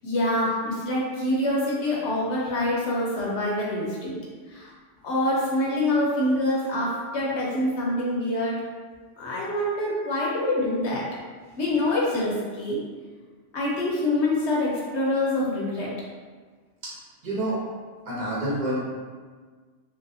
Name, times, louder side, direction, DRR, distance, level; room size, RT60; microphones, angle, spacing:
voice 1, 0.0-4.2 4.5-4.7 5.0-8.6 9.2-11.1 11.6-12.8 13.5-15.9, left 1 dB, 70° left, -5 dB, 0.9 m, -25 dB
voice 2, 17.2-17.6 18.0-18.8, right 1 dB, 40° right, -7 dB, 1.0 m, -27 dB
3.1 x 2.7 x 2.6 m, 1.5 s
omnidirectional pair, 1.3 m